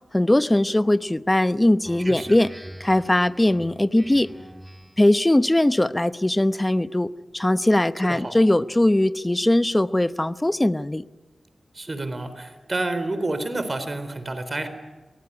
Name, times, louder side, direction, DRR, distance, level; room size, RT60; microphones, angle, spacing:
voice 1, 0.1-2.5 2.8-4.3 5.0-11.0, left 1 dB, 20° left, 13 dB, 0.9 m, -20 dB
Speech synthesizer, 1.8-5.2, right 1 dB, 10° right, 3.2 m, -42 dB
voice 2, 8.0-8.3 11.7-14.7, right 2 dB, 40° right, 11 dB, 4.0 m, -29 dB
25.0 x 18.5 x 9.8 m, 1.3 s
cardioid pair, 50°, 0 cm